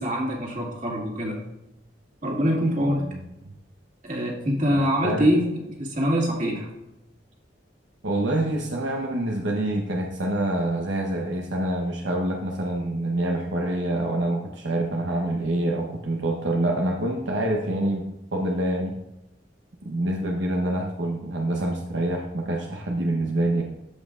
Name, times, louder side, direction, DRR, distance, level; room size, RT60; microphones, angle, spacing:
voice 1, 0.0-1.4 2.2-3.1 4.0-6.7, equal, 45° right, -2 dB, 2.1 m, -24 dB
voice 2, 8.0-18.9 19.8-23.6, right 1 dB, 80° right, 0 dB, 0.9 m, -26 dB
13.5 x 5.4 x 2.5 m, 0.91 s
head